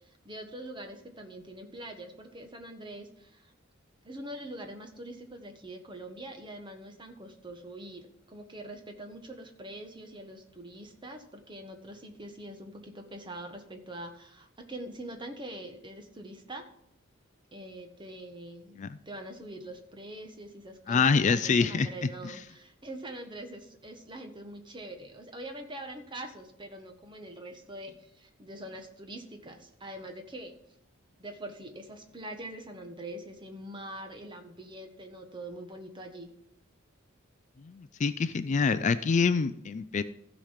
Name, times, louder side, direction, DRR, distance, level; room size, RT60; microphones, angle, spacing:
voice 1, 0.0-3.5 4.0-16.6 17.5-18.8 19.0-30.5 31.2-36.3, right 1 dB, 25° right, 5 dB, 1.4 m, -44 dB
voice 2, 20.9-21.9 22.2-22.3 37.6-40.0, left 5 dB, 35° left, 12 dB, 0.4 m, -26 dB
15.0 x 5.1 x 5.8 m, 0.74 s
head